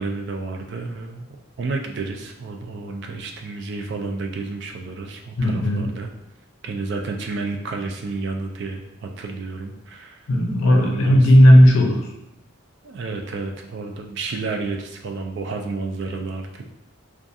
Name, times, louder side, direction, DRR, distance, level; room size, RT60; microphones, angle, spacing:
voice 1, 0.0-6.1 6.6-10.2 10.6-11.3 12.8-16.7, right 3 dB, 55° right, 4 dB, 0.3 m, -31 dB
voice 2, 5.4-5.9 10.3-12.1, equal, 75° left, 1 dB, 0.5 m, -14 dB
2.3 x 2.3 x 2.6 m, 0.88 s
head